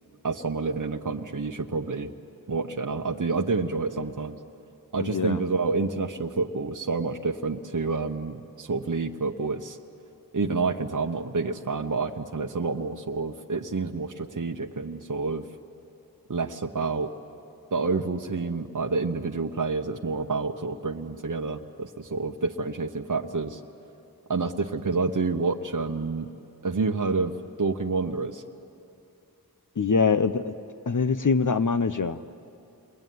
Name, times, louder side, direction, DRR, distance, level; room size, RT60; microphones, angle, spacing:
voice 1, 0.2-2.1 2.5-4.4 4.9-9.8 10.3-15.5 16.3-17.1 17.7-23.6 24.3-26.3 26.6-28.4, right 4 dB, 55° right, 4 dB, 1.0 m, -28 dB
voice 2, 5.0-5.4 29.8-30.5 30.9-32.3, left 5 dB, 55° left, 10 dB, 0.8 m, -24 dB
28.5 x 22.0 x 9.3 m, 2.7 s
wide cardioid pair, 40°, 37 cm